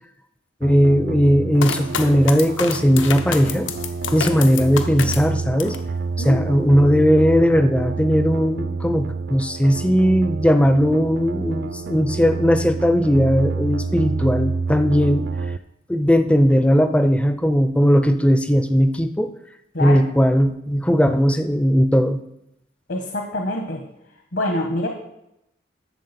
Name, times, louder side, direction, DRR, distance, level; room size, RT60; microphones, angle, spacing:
voice 1, 0.6-3.7 4.1-5.8 6.2-15.3 15.9-19.3 19.8-22.2, equal, 5° left, 9 dB, 0.4 m, -18 dB
sound 1, 0.6-15.6, right 4 dB, 60° right, 0.3 m, -28 dB
sound 2, 1.6-5.9 6.3-7.0, left 6 dB, 85° left, 0.8 m, -29 dB
voice 2, 22.9-23.8 24.3-24.9, left 1 dB, 65° left, 2 dB, 1.2 m, -25 dB
11.5 x 7.2 x 4.2 m, 0.82 s
head